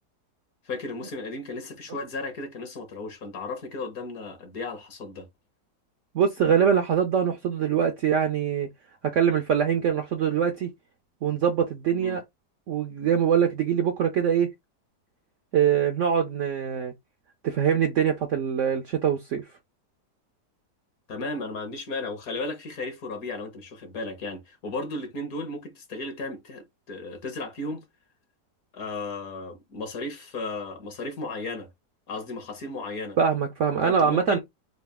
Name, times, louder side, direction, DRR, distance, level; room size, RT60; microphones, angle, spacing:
voice 1, 0.6-5.3 12.0-12.2 21.1-27.8 28.7-31.7 32.1-33.2 33.8-34.4, left 2 dB, 60° left, 1.4 m, -35 dB
voice 2, 6.1-8.7 9.1-10.7 11.2-12.2 12.7-14.5 15.5-16.9 17.4-19.4 33.2-34.4, right 8 dB, 65° right, 0.7 m, -23 dB
3.9 x 2.3 x 3.5 m
omnidirectional pair, 1.8 m